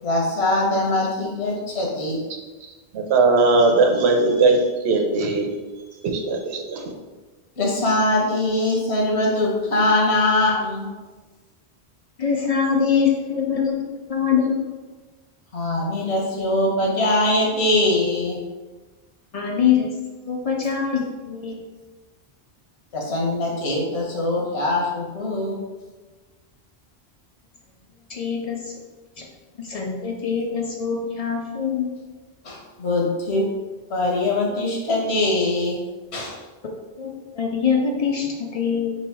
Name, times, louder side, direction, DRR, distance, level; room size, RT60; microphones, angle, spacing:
voice 1, 0.0-2.2 7.6-10.9 15.5-18.4 22.9-25.6 32.4-33.5 33.9-35.8 36.1-36.4, left 2 dB, 85° left, -2 dB, 1.3 m, -22 dB
voice 2, 2.9-4.6 4.8-5.5 6.0-6.9, right 3 dB, 85° right, 3 dB, 0.9 m, -19 dB
voice 3, 12.2-14.6 19.3-19.9 20.3-21.5 28.1-28.8 29.2-29.3 29.6-31.9 36.6-36.7 37.0-38.9, left 7 dB, 55° left, 1 dB, 0.4 m, -23 dB
3.2 x 3.0 x 4.4 m, 1.3 s
omnidirectional pair, 1.1 m